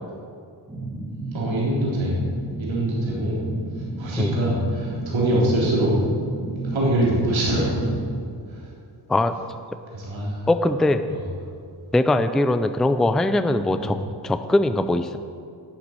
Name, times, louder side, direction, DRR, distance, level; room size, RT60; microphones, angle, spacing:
sound 1, 0.7-8.1, right 2 dB, 15° right, 1.8 m, -32 dB
voice 1, 1.3-2.2 2.6-3.4 3.7-5.9 6.5-8.0 8.5-8.7 9.9-10.5 11.1-11.2 13.8-13.9, right 1 dB, 80° right, -5 dB, 3.7 m, -24 dB
voice 2, 10.5-11.0 11.9-14.0 14.2-15.2, left 2 dB, ahead, 10 dB, 0.4 m, -21 dB
11.5 x 7.3 x 9.7 m, 2.3 s
wide cardioid pair, 120°, 46 cm